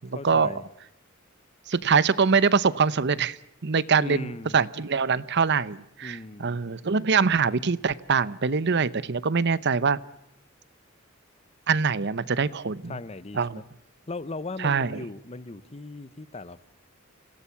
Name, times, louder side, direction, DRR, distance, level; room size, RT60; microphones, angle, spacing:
voice 1, 0.1-0.6 3.9-4.6 6.0-6.6 12.9-13.6 14.1-16.7, left 2 dB, 30° left, 0.8 m, -38 dB
voice 2, 1.7-3.4 3.6-10.0 11.7-12.9 13.3-13.6 14.6-15.0, right 5 dB, 55° right, 0.8 m, -24 dB
27.0 x 17.5 x 7.1 m
head